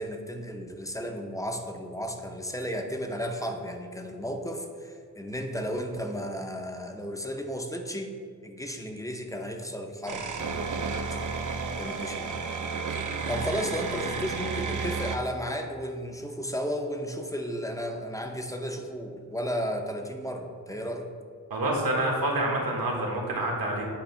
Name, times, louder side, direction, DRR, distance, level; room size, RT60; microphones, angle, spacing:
voice 1, 0.0-8.1 8.4-10.9 11.6-12.7 13.3-21.1, equal, 10° left, 3 dB, 0.6 m, -34 dB
sound 1, 10.1-15.2, right 4 dB, 60° right, 0.6 m, -32 dB
voice 2, 21.5-23.8, right 1 dB, 75° right, -1 dB, 1.5 m, -27 dB
8.7 x 2.9 x 5.5 m, 2.2 s
wide cardioid pair, 110°, 35 cm